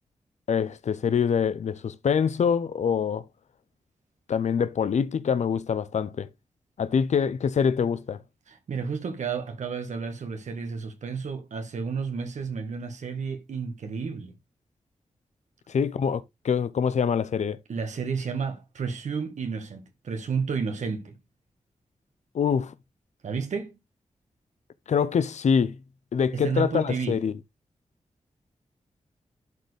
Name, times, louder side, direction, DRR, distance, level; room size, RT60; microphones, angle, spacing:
voice 1, 0.5-3.2 4.3-6.3 6.8-8.2 15.7-17.6 22.3-22.7 24.9-25.8 26.1-27.4, left 7 dB, 70° left, 0.7 m, -25 dB
voice 2, 8.5-14.3 17.7-21.2 23.2-23.7 26.3-27.2, right 5 dB, 80° right, 1.5 m, -31 dB
11.5 x 4.3 x 3.3 m
cardioid pair, 60°, 12 cm